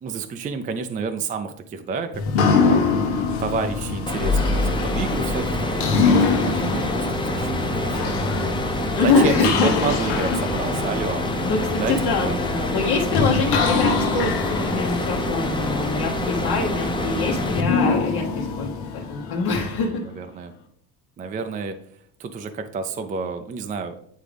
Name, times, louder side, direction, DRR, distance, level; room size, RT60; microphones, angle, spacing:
voice 1, 0.0-2.8 3.4-8.3 9.0-11.2 11.8-12.4 19.8-20.5 21.2-21.8 22.2-24.0, right 4 dB, 20° right, 7 dB, 0.4 m, -30 dB
sound 1, 2.1-20.0, left 4 dB, 90° left, 1.2 m, -25 dB
sound 2, 4.1-17.6, left 1 dB, 10° left, 0.7 m, -26 dB
voice 2, 9.0-9.7 10.3-10.4 11.4-20.0, left 3 dB, 65° left, -2 dB, 1.2 m, -24 dB
9.3 x 3.7 x 3.4 m, 0.66 s
cardioid pair, 125°, 40 cm